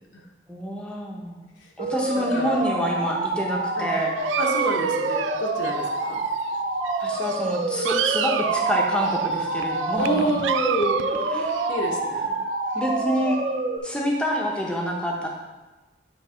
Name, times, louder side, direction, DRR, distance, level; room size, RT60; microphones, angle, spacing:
voice 1, 0.5-1.4 1.8-4.2 7.0-10.3 11.1-11.6 12.7-13.4 13.8-15.3, equal, 5° left, -1 dB, 1.0 m, -27 dB
sound 1, 1.8-13.8, right 2 dB, 40° right, 0.7 m, -27 dB
voice 2, 2.1-2.6 3.8-3.9 4.4-6.2 10.0-11.3 11.7-12.3, equal, 80° left, -1 dB, 1.2 m, -28 dB
Dog, 4.2-6.6 6.8-12.8, right 7 dB, 85° right, 0.4 m, -29 dB
8.9 x 3.4 x 5.1 m, 1.2 s
head